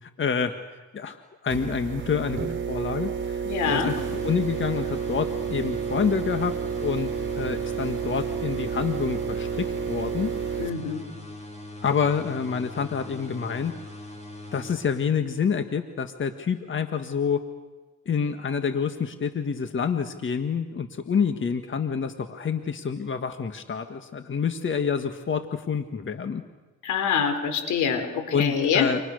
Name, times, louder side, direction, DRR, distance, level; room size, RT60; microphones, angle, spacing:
voice 1, 0.0-0.5 0.9-3.4 3.7-7.1 7.3-10.3 11.8-13.7 14.5-17.4 18.0-26.4 28.3-29.0, left 6 dB, 40° left, 8 dB, 1.7 m, -27 dB
sound 1, 1.5-10.7, right 7 dB, 40° right, 3.1 m, -30 dB
voice 2, 3.4-4.0 10.6-11.0 26.8-28.9, left 7 dB, 80° left, 8 dB, 4.1 m, -25 dB
sound 2, 3.6-15.4, left 1 dB, 20° left, 6.9 m, -41 dB
29.5 x 27.0 x 6.6 m, 1.3 s
cardioid pair, 90°, 30 cm